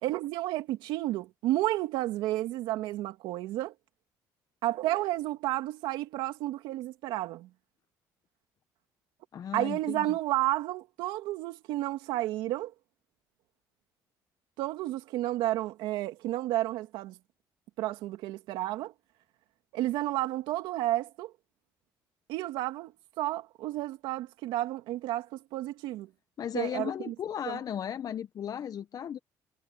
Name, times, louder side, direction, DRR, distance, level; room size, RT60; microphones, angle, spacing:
voice 1, 0.0-3.7 4.6-7.5 9.5-12.7 14.6-17.2 17.8-18.9 19.7-21.3 22.3-26.1 26.5-27.1 27.5-27.6, right 16 dB, 85° right, 2.3 m, -31 dB
voice 2, 9.3-10.1 26.4-29.2, left 9 dB, 50° left, 0.9 m, -35 dB
supercardioid pair, 80°, 8 cm